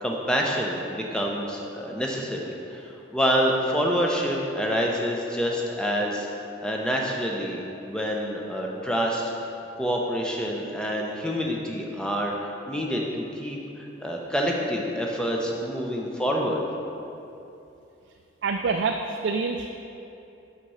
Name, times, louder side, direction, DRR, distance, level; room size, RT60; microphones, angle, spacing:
voice 1, 0.0-6.3 6.6-7.6 7.9-9.3 9.8-16.6, equal, 5° left, -1 dB, 0.7 m, -27 dB
voice 2, 18.4-19.7, right 4 dB, 65° right, 4 dB, 0.3 m, -26 dB
5.9 x 5.8 x 5.6 m, 2.8 s
head